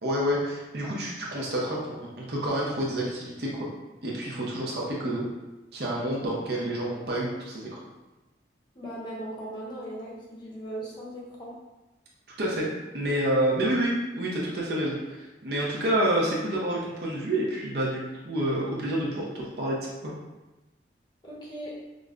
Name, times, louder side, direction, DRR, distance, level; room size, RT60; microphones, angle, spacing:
voice 1, 0.0-3.7 4.0-5.2 5.7-7.7 12.4-12.7 12.9-19.8 20.0-20.1, right 1 dB, 60° right, -4 dB, 0.7 m, -28 dB
voice 2, 8.7-11.5 21.2-21.7, right 1 dB, 25° left, -6 dB, 0.8 m, -38 dB
5.1 x 2.1 x 2.4 m, 1.1 s
head